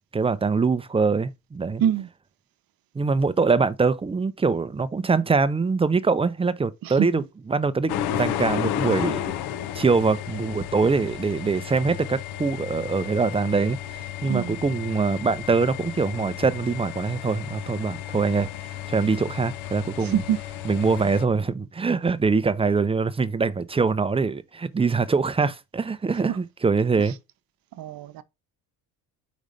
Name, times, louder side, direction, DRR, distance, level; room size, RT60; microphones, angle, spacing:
voice 1, 0.1-1.8 2.9-7.2 7.5-9.3 9.7-20.2 20.7-27.1, right 4 dB, 15° right, 0.5 m, -23 dB
voice 2, 6.8-7.2 14.2-14.6 20.0-20.4 21.0-21.1 26.3-26.4 27.7-28.2, right 10 dB, 55° right, 0.8 m, -26 dB
sound 1, 7.9-21.2, left 10 dB, 70° left, 0.7 m, -33 dB
5.2 x 4.0 x 4.9 m
supercardioid pair, 95°, 41 cm